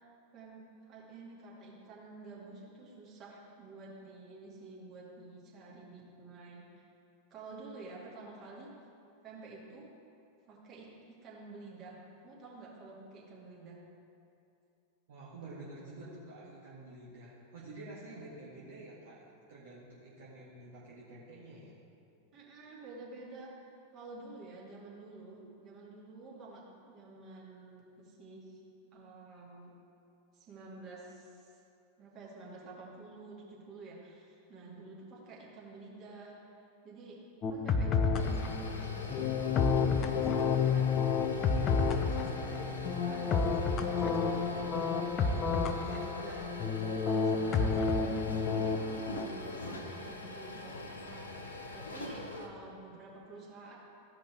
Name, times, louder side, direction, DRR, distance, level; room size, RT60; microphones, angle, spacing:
voice 1, 0.3-6.9 7.3-8.7 9.2-9.9 10.5-13.8 22.3-23.5 23.9-28.6 28.9-29.7 30.3-31.6 32.0-36.6 36.8-37.2 37.5-39.3 39.8-40.9 41.3-43.3 43.7-48.7 49.0-51.3 51.7-53.7, right 3 dB, 35° right, -5 dB, 2.5 m, -50 dB
voice 2, 15.1-21.7, right 2 dB, 60° right, -7 dB, 1.7 m, -49 dB
sound 1, 37.4-49.3, left 5 dB, 30° left, 0.5 m, -30 dB
sound 2, 38.0-52.5, left 2 dB, 70° left, 0.8 m, -43 dB
15.0 x 5.2 x 4.5 m, 2.7 s
figure-of-eight pair, 90°, 0 cm